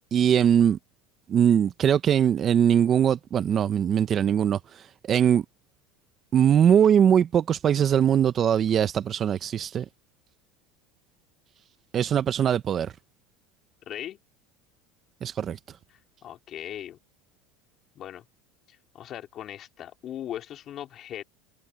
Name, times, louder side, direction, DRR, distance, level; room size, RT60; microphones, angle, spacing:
voice 1, 0.1-0.8 1.3-5.4 6.3-9.8 11.9-12.9 15.2-15.6, right 9 dB, 35° right, 0.8 m, -21 dB
voice 2, 13.9-14.2 15.9-17.0 18.0-18.2 18.7-21.2, left 11 dB, 40° left, 3.6 m, -39 dB
supercardioid pair, 130°, 0 cm